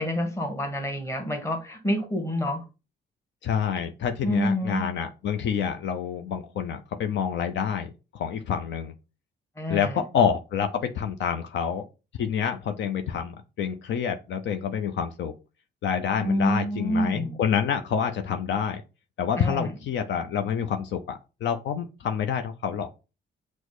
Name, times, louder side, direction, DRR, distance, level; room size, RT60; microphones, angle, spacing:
voice 1, 0.0-2.6 4.2-4.9 9.6-10.0 16.2-17.4 19.4-19.7, equal, 15° left, 5 dB, 1.2 m, -27 dB
voice 2, 3.4-8.9 9.7-11.8 12.2-15.3 15.8-18.8 19.2-22.9, left 7 dB, 65° left, 6 dB, 0.6 m, -27 dB
6.1 x 2.1 x 3.0 m, 0.29 s
cardioid pair, 90°, 20 cm